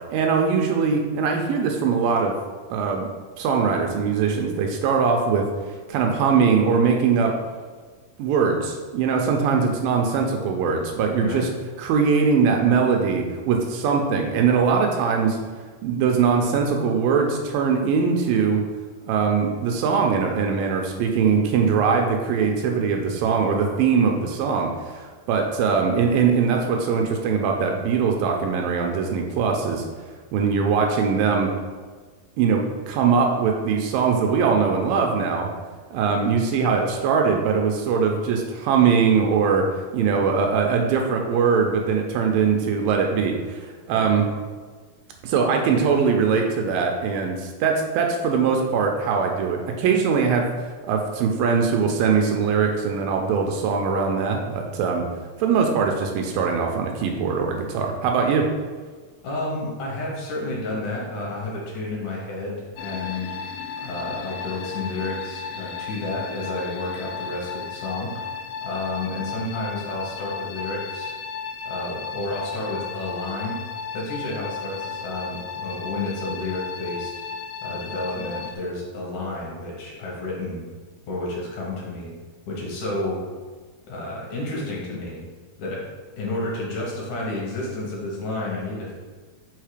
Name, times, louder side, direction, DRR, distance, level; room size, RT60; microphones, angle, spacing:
voice 1, 0.1-2.3 2.7-3.1 3.4-5.5 5.9-7.3 8.2-11.5 11.8-15.4 15.8-18.6 19.1-29.8 30.3-31.5 32.4-35.5 35.9-44.2 45.2-50.5 50.9-55.1 55.4-58.5, right 5 dB, 80° right, 2 dB, 2.2 m, -21 dB
voice 2, 59.2-63.3 63.8-68.2 68.6-71.1 71.7-73.6 73.9-77.4 77.6-80.6 81.1-82.1 82.5-83.2 83.9-85.2 85.6-85.9 86.2-88.9, left 2 dB, 65° left, -4 dB, 2.4 m, -31 dB
sound 1, 62.8-78.6, left 6 dB, 85° left, 2.4 m, -34 dB
5.6 x 3.6 x 4.9 m, 1.5 s
omnidirectional pair, 4.1 m